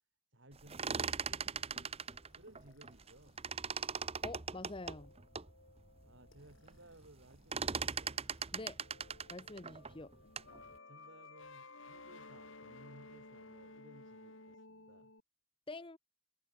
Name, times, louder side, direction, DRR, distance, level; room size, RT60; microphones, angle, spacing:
voice 1, 0.3-2.0 2.3-3.4 6.0-8.3 10.5-15.1, right 1 dB, 60° right, 4.4 m, -60 dB
sound 1, 0.6-3.1 3.4-5.5 6.0-6.1 6.4-6.8 7.0-10.6, right 6 dB, 30° right, 1.0 m, -39 dB
sound 2, 1.3-8.5 8.8-15.2, left 3 dB, 65° left, 5.5 m, -58 dB
voice 2, 4.2-5.1 8.5-8.8 9.3-10.1 15.7-16.0, left 2 dB, 25° left, 0.9 m, -46 dB
head